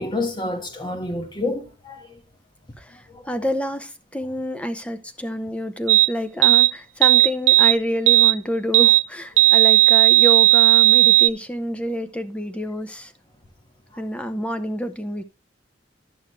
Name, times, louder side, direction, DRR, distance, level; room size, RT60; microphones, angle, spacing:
voice 1, 0.0-2.1 3.1-3.2, left 2 dB, 25° left, 1.4 m, -28 dB
voice 2, 3.3-13.1 14.0-15.2, equal, 5° left, 0.7 m, -28 dB
sound 1, 5.9-6.1 6.4-6.7 7.0-7.8 8.1-8.3 8.7-9.0 9.4-11.3, right 16 dB, 90° right, 0.4 m, -14 dB
11.5 x 6.3 x 3.2 m
head